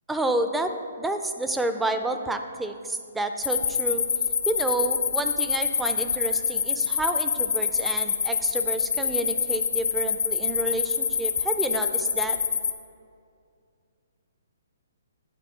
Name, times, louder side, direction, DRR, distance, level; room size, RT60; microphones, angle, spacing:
voice 1, 0.1-0.7 1.0-4.1 4.5-12.4, right 2 dB, 5° right, 7 dB, 0.4 m, -29 dB
sound 1, 3.4-12.7, left 6 dB, 70° left, 0.6 m, -26 dB
8.9 x 4.2 x 7.1 m, 2.3 s
hypercardioid pair, 160°, 0 cm